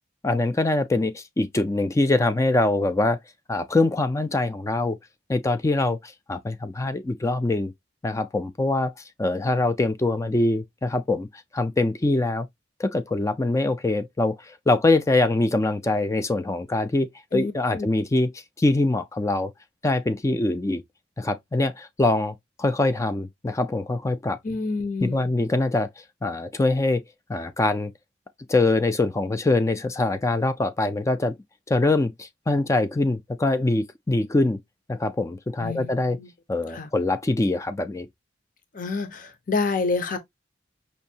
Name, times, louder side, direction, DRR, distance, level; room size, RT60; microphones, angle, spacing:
voice 1, 0.2-3.2 3.5-5.0 5.3-7.7 8.0-8.9 9.2-11.3 11.5-12.5 12.8-18.3 18.6-19.5 19.8-20.8 21.2-24.4 25.0-25.9 26.2-27.0 27.3-27.9 28.5-31.3 31.7-34.6 34.9-36.2 36.5-38.1, left 2 dB, 15° left, 0.3 m, -23 dB
voice 2, 17.3-17.9 24.4-25.3 35.6-36.3 36.7-36.9 38.7-40.2, left 3 dB, 45° left, 0.7 m, -28 dB
5.4 x 2.6 x 2.6 m
head